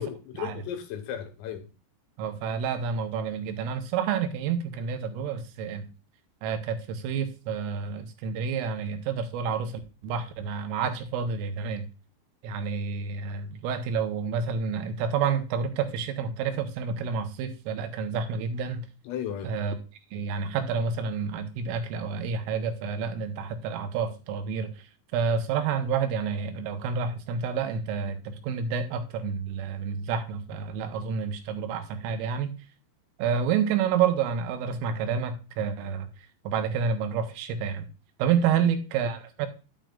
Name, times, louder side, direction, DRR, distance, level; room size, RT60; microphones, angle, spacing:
voice 1, 0.0-1.7 19.1-19.5, left 9 dB, 75° left, 6 dB, 3.9 m, -35 dB
voice 2, 2.2-5.9 6.4-11.9 12.4-18.9 19.4-19.8 20.1-24.9 25.1-32.5 33.2-36.1 36.5-37.9 38.2-39.5, right 6 dB, 80° right, 7 dB, 3.5 m, -29 dB
10.5 x 9.2 x 2.5 m, 0.32 s
omnidirectional pair, 6.0 m